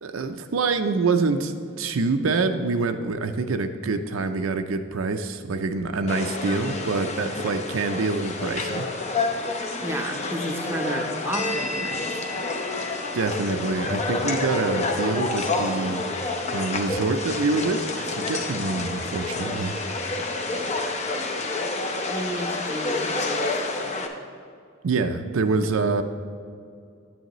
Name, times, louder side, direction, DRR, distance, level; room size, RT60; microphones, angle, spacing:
voice 1, 0.0-8.9 13.1-16.0 16.5-19.7 24.8-26.0, right 3 dB, 80° right, 7 dB, 0.5 m, -26 dB
sound 1, 6.1-24.1, left 3 dB, 35° left, 0.7 m, -29 dB
voice 2, 9.8-12.1 22.1-23.9, right 1 dB, 10° right, 2 dB, 0.6 m, -32 dB
9.0 x 8.8 x 3.0 m, 2.3 s
head